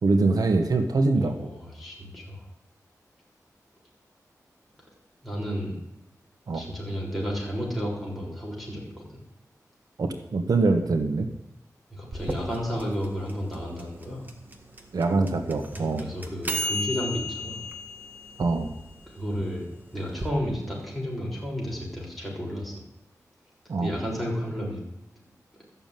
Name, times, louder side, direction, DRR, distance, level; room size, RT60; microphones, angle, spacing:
voice 1, 0.0-1.5 6.5-6.6 10.0-11.3 14.9-16.1 18.4-18.7 23.7-23.9, right 3 dB, 80° right, 6 dB, 1.3 m, -24 dB
voice 2, 1.1-2.4 5.2-5.8 6.5-9.2 11.9-14.3 15.7-17.6 19.1-19.7 19.9-22.7 23.8-24.8, equal, ahead, -4 dB, 6.3 m, -32 dB
sound 1, 12.1-20.3, equal, 30° right, 1.8 m, -35 dB
14.0 x 7.0 x 9.1 m, 0.86 s
wide cardioid pair, 110°, 6 cm